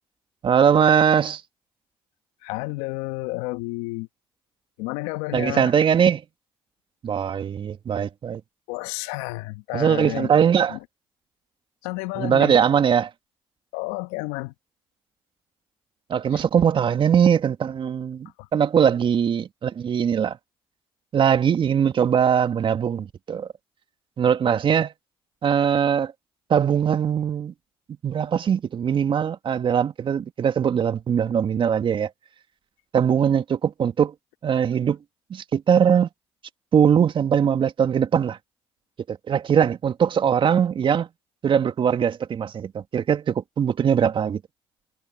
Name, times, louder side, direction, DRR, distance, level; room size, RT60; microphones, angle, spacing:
voice 1, 0.4-1.4 5.3-6.2 7.0-8.4 9.7-10.8 12.2-13.1 16.1-18.3 18.5-20.4 21.1-23.5 24.2-24.9 25.4-26.1 26.5-27.5 28.0-32.1 32.9-34.1 34.4-35.0 35.3-36.1 36.7-38.4 39.1-41.1 41.4-44.4, right 8 dB, 50° right, 2.0 m, -21 dB
voice 2, 2.4-4.1 4.8-5.7 8.7-10.3 10.7-10.8 11.8-12.6 13.7-14.5 16.3-16.4 18.4-18.5, left 23 dB, 80° left, 1.3 m, -31 dB
hypercardioid pair, 55°, 11 cm